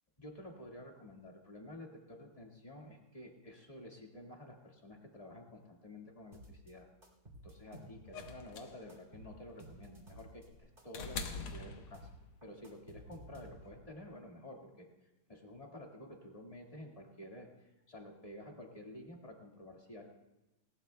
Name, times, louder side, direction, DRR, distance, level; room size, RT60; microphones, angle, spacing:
voice 1, 0.2-6.9 7.4-12.1 12.4-14.9 15.3-20.0, left 1 dB, 20° left, 0 dB, 1.7 m, -51 dB
sound 1, 6.3-6.7 7.0-8.6 8.9-10.5 10.8-13.9, right 1 dB, 25° right, 2.7 m, -54 dB
sound 2, 8.1-12.4 13.6-13.7, left 5 dB, 80° left, 2.0 m, -45 dB
19.5 x 18.5 x 2.2 m, 1.0 s
omnidirectional pair, 2.4 m